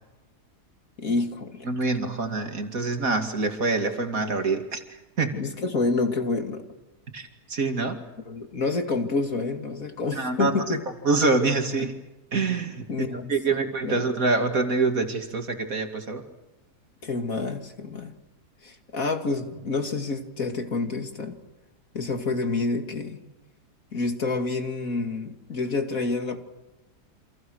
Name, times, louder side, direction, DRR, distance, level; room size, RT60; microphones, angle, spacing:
voice 1, 1.0-1.9 5.3-6.7 8.2-10.8 11.8-11.9 12.9-14.0 17.0-18.1 18.6-21.4 21.9-23.2 23.9-26.4, left 3 dB, 55° left, 3.0 m, -28 dB
voice 2, 1.7-4.8 5.2-5.3 7.1-8.0 10.1-10.5 11.1-11.9 12.3-16.2, right 3 dB, 55° right, 2.9 m, -25 dB
29.5 x 27.0 x 6.4 m
omnidirectional pair, 1.7 m